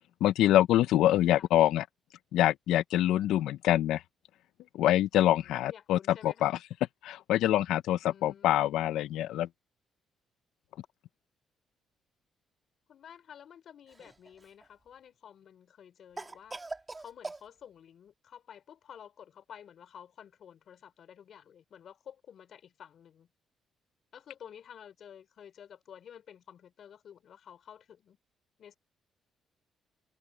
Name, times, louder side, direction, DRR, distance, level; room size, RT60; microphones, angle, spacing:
voice 1, 0.2-1.8 2.3-4.0 4.7-6.6 7.0-9.5, left 13 dB, 85° left, 0.7 m, -25 dB
voice 2, 0.9-1.5 5.4-6.5 8.0-8.7 12.9-16.6 17.0-23.3 24.1-28.2 28.6-28.7, left 8 dB, 65° left, 4.0 m, -51 dB
Cough, 13.9-14.7 16.2-17.4, right 3 dB, 20° right, 3.0 m, -42 dB
cardioid pair, 90°, 0 cm